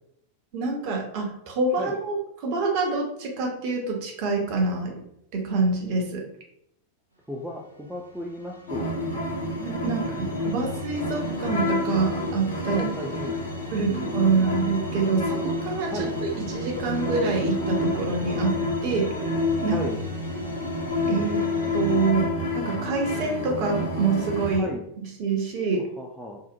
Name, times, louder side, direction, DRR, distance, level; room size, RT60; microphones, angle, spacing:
voice 1, 0.5-4.9 5.3-6.3 9.6-12.9 13.7-19.1 19.6-19.8 21.1-21.4 21.7-22.3 22.5-24.7 25.0-25.8, right 4 dB, 45° right, 1 dB, 0.7 m, -26 dB
voice 2, 7.3-8.9 9.8-10.8 12.7-13.5 13.8-14.6 15.9-16.2 19.7-20.0 24.6-24.8 25.7-26.4, left 1 dB, 5° right, -2 dB, 0.3 m, -36 dB
sound 1, 7.8-22.1, left 2 dB, 90° right, 0.6 m, -40 dB
sound 2, 8.7-24.6, left 2 dB, 55° left, 0.7 m, -29 dB
2.7 x 2.0 x 2.6 m, 0.75 s
figure-of-eight pair, 90°, 0 cm